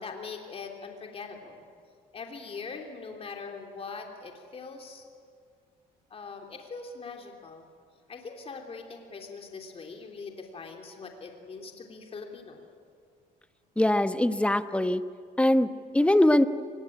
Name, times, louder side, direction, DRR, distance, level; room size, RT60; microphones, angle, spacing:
voice 1, 0.0-1.6 2.1-5.0 6.1-7.7 8.1-12.6, left 4 dB, 35° left, 3 dB, 3.0 m, -42 dB
voice 2, 13.8-15.0 15.4-16.4, left 1 dB, 5° left, 11 dB, 1.0 m, -22 dB
23.5 x 20.5 x 9.9 m, 2.1 s
cardioid pair, 110°, 17 cm